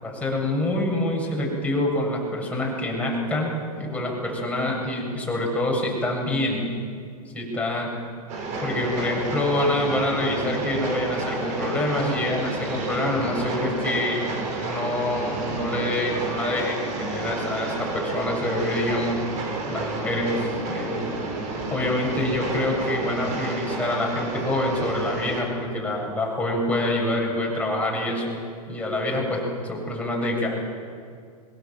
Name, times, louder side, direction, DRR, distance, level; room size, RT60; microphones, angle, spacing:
voice 1, 0.0-3.5 3.8-6.7 7.3-7.9 8.6-14.2 14.5-19.1 19.7-21.1 21.7-28.4 28.7-30.6, left 1 dB, 5° left, -2 dB, 7.6 m, -26 dB
Train, 8.3-25.4, right 3 dB, 35° right, 6.2 m, -30 dB
26.0 x 23.0 x 7.4 m, 2.2 s
hypercardioid pair, 120°, 20 cm